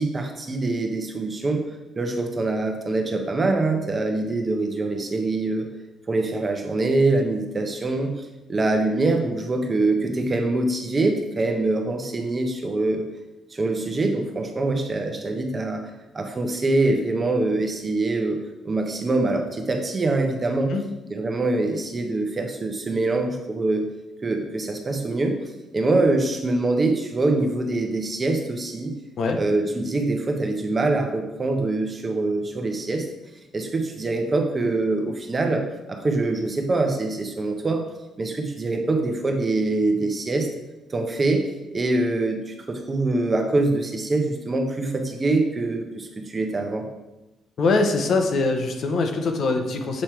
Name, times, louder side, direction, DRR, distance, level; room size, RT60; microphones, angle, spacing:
voice 1, 0.0-1.6 2.0-5.7 6.1-13.1 13.5-20.7 21.1-23.9 24.2-25.4 25.7-28.9 29.3-33.1 33.5-37.8 38.2-40.5 40.9-41.4 41.7-46.9, right 2 dB, 30° right, 4 dB, 0.9 m, -24 dB
voice 2, 47.6-50.0, left 3 dB, 60° left, 5 dB, 0.8 m, -23 dB
7.5 x 3.3 x 4.5 m, 1.0 s
cardioid pair, 90°, 0 cm